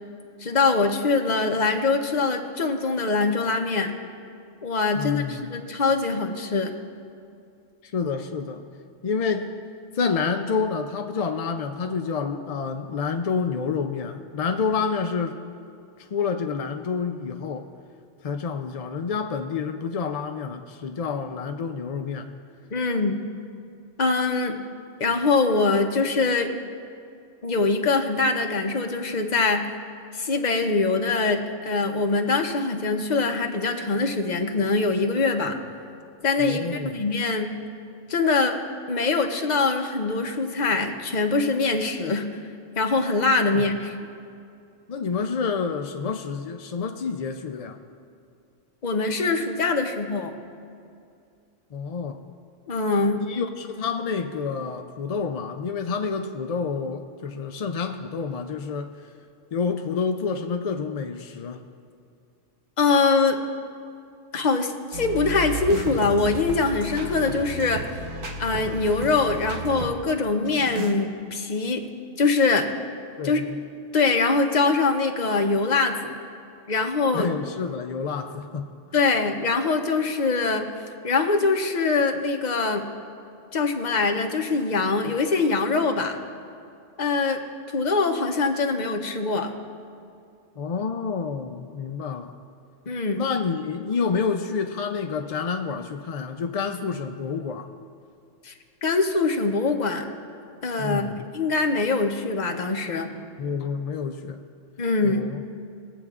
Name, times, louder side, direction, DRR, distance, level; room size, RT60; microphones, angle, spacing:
voice 1, 0.4-3.9 4.6-6.7 22.7-23.2 24.0-24.6 25.0-26.5 27.4-29.7 30.1-35.6 36.2-36.7 36.9-37.6 38.1-38.6 38.9-42.3 42.8-43.9 48.8-50.4 52.7-53.2 62.8-63.4 64.3-67.8 68.4-71.8 72.2-72.7 73.2-73.4 73.9-76.0 76.7-77.3 78.9-80.7 81.0-82.8 83.5-86.2 87.0-87.4 87.7-89.5 92.9-93.2 98.4-98.5 98.8-100.0 100.6-103.2 104.8-105.2, left 3 dB, 45° left, 4 dB, 0.8 m, -23 dB
voice 2, 4.9-5.6 7.8-8.6 9.0-9.5 9.9-15.4 16.0-17.7 18.2-22.3 36.4-37.0 43.5-43.7 44.9-47.8 51.7-52.2 53.2-58.9 59.5-61.6 73.2-73.6 77.1-78.7 90.6-92.3 93.1-97.7 100.8-101.2 103.4-104.4 105.0-105.4, left 5 dB, 65° left, 6 dB, 0.3 m, -28 dB
sound 1, 64.9-69.9 70.4-70.9, right 3 dB, 50° right, 1.0 m, -33 dB
21.0 x 7.9 x 2.4 m, 2.4 s
omnidirectional pair, 1.2 m